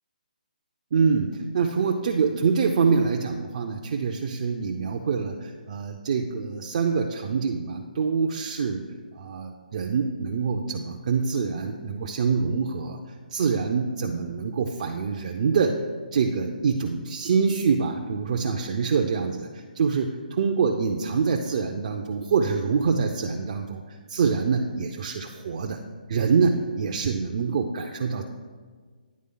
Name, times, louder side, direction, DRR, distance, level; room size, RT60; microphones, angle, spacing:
voice 1, 0.9-8.8 9.1-13.0 13.3-15.8 16.1-25.8 26.1-28.2, right 5 dB, 45° right, 2 dB, 0.4 m, -25 dB
9.5 x 3.5 x 3.8 m, 1.5 s
hypercardioid pair, 160°, 5 cm